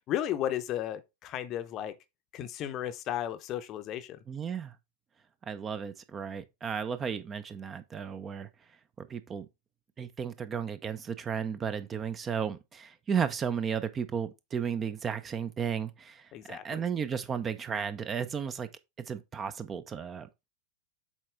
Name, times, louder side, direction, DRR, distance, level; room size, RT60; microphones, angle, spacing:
voice 1, 0.1-1.9 2.3-4.2 16.3-16.8, left 11 dB, 35° left, 0.7 m, -34 dB
voice 2, 4.3-4.7 5.4-8.5 9.0-9.5 10.0-18.7 19.1-20.5, right 7 dB, 20° right, 0.5 m, -34 dB
7.4 x 4.2 x 3.2 m
figure-of-eight pair, 90°, 0 cm